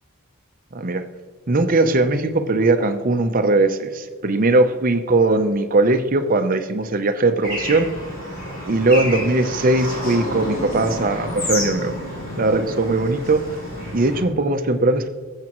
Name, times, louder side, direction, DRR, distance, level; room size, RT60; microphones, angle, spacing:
voice 1, 1.5-7.9 8.7-11.9 12.4-13.5 13.9-15.1, right 2 dB, 40° right, 7 dB, 0.7 m, -19 dB
Bird / Traffic noise roadway noise, 7.4-14.2, left 1 dB, 45° left, 3.7 m, -30 dB
19.5 x 7.4 x 3.0 m, 1.5 s
head